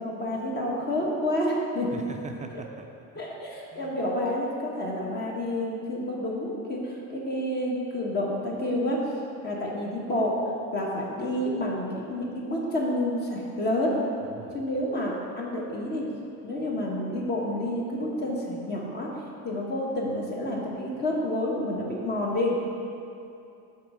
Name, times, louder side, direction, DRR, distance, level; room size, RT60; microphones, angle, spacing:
voice 1, 0.0-2.0 2.5-2.6 3.2-9.0 9.4-10.4 10.7-13.9 14.5-16.0 16.4-19.1 19.4-22.6, left 1 dB, 30° left, -3 dB, 1.0 m, -29 dB
voice 2, 1.9-2.9 3.1-3.2 3.7-4.0 14.2-14.6, right 4 dB, 25° right, 3 dB, 0.4 m, -41 dB
5.9 x 4.3 x 6.0 m, 2.7 s
cardioid pair, 135°, 32 cm